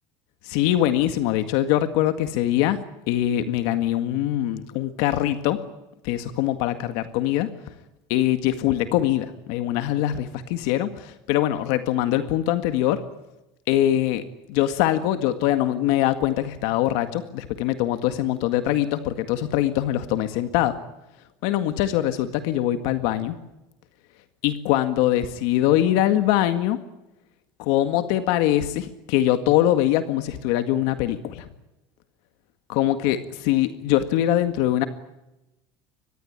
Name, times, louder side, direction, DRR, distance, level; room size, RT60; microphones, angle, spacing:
voice 1, 0.4-2.8 3.1-5.6 6.0-7.5 8.1-13.0 13.7-14.2 14.5-20.8 21.4-23.4 24.4-26.8 27.6-31.5 32.7-34.9, left 13 dB, 65° left, 9 dB, 1.9 m, -23 dB
24.5 x 20.5 x 8.8 m, 0.95 s
cardioid pair, 160°, 12 cm